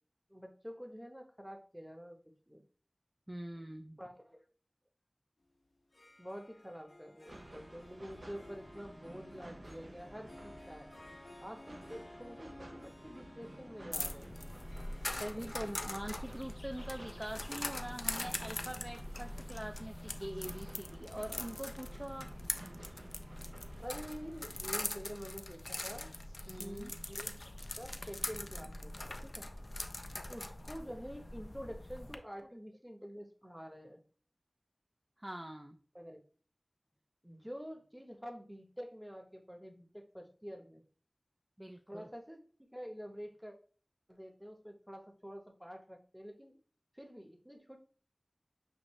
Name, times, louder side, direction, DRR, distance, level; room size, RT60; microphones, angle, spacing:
voice 1, 0.3-2.2 2.5-2.6 4.0-4.4 6.2-10.9 11.4-14.3 15.2-15.6 23.8-26.1 26.6-27.4 27.8-29.5 30.3-34.0 35.9-36.2 37.2-40.8 41.9-43.5 44.1-46.6 46.9-47.8, equal, 5° right, 4 dB, 0.9 m, -48 dB
voice 2, 3.3-4.0 15.2-22.3 26.5-26.9 35.2-35.8 41.6-42.1, right 1 dB, 20° right, 4 dB, 0.4 m, -44 dB
Harp, 5.8-18.7, left 1 dB, 80° left, 0.9 m, -57 dB
sound 1, 7.3-24.8, right 1 dB, 70° right, 0.7 m, -53 dB
sound 2, 13.9-32.1, left 1 dB, 55° left, 0.4 m, -42 dB
6.2 x 2.5 x 3.1 m, 0.42 s
wide cardioid pair, 50°, 0 cm